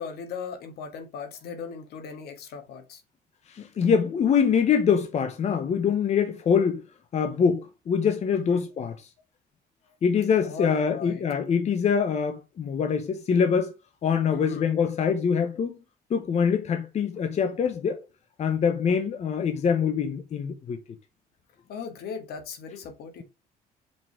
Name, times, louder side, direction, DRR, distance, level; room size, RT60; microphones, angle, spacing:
voice 1, 0.0-3.0 8.3-8.7 10.4-11.2 14.3-14.7 21.7-23.2, left 6 dB, 80° left, 2.0 m, -38 dB
voice 2, 3.5-6.8 7.1-8.9 10.0-13.7 14.0-15.8 16.1-18.0 18.4-20.8, left 6 dB, 45° left, 0.9 m, -24 dB
5.4 x 5.3 x 4.8 m
cardioid pair, 125°, 16 cm